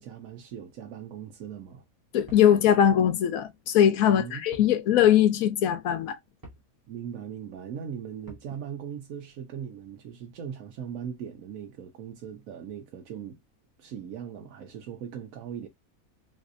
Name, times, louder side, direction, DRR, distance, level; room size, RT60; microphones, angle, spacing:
voice 1, 0.0-1.8 4.1-4.4 6.9-13.4 13.8-15.7, right 8 dB, 75° right, 1.0 m, -39 dB
voice 2, 2.1-6.2, left 10 dB, 80° left, 1.0 m, -21 dB
sound 1, 2.3-2.6 4.5-4.8 5.1-5.2 6.4-6.7 8.3-8.6, right 2 dB, 20° right, 0.7 m, -47 dB
4.0 x 2.6 x 2.5 m
omnidirectional pair, 1.5 m